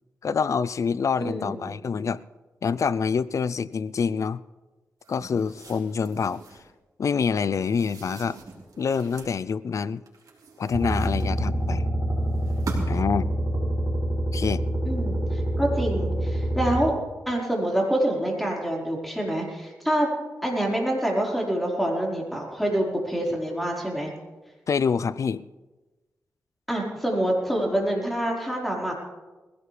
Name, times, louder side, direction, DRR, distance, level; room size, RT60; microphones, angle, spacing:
voice 1, 0.2-2.2 2.6-4.4 5.1-6.4 7.0-8.4 8.8-10.0 10.6-11.9 12.9-13.3 14.3-14.6 24.7-25.4, left 6 dB, 55° left, 17 dB, 0.5 m, -26 dB
voice 2, 1.2-1.7 14.8-16.9 17.3-20.1 20.4-24.1 26.7-28.9, right 1 dB, ahead, -2 dB, 4.6 m, -26 dB
sound 1, 5.0-6.7 7.6-9.4 10.1-11.7 12.3-13.1, right 3 dB, 75° right, 3.7 m, -42 dB
sound 2, 10.7-16.8, right 1 dB, 50° right, 6.9 m, -26 dB
21.0 x 16.5 x 3.3 m, 1.2 s
cardioid pair, 75°, 6 cm